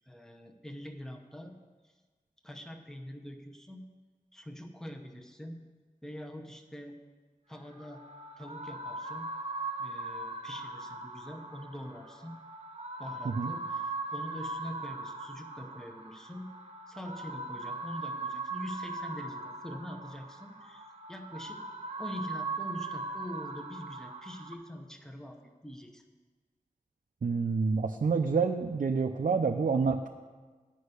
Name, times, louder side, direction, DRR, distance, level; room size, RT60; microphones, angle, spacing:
voice 1, 0.1-1.6 2.4-3.9 4.3-5.6 6.0-7.0 7.5-8.0 8.4-9.3 9.8-12.4 13.0-16.5 16.9-21.6 22.0-26.0, equal, 5° left, 3 dB, 0.8 m, -44 dB
sound 1, 7.5-24.5, right 3 dB, 45° right, 0.9 m, -40 dB
voice 2, 27.2-30.2, right 5 dB, 65° right, 4 dB, 0.5 m, -28 dB
10.0 x 5.4 x 8.1 m, 1.4 s
wide cardioid pair, 75°, 15 cm